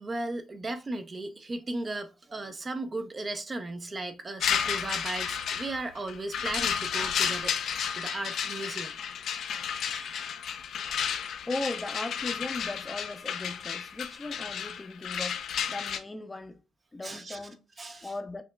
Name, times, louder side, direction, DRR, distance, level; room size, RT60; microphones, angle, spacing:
voice 1, 0.0-7.6 8.0-9.0 9.7-10.3 17.0-17.4 17.8-18.1, right 2 dB, 30° right, 0.6 m, -36 dB
sound 1, 4.4-16.0, left 8 dB, 70° left, 0.5 m, -32 dB
voice 2, 11.5-16.6 16.9-17.6 18.0-18.4, left 2 dB, 20° left, 0.6 m, -37 dB
5.2 x 2.8 x 2.2 m
cardioid pair, 90°, 0 cm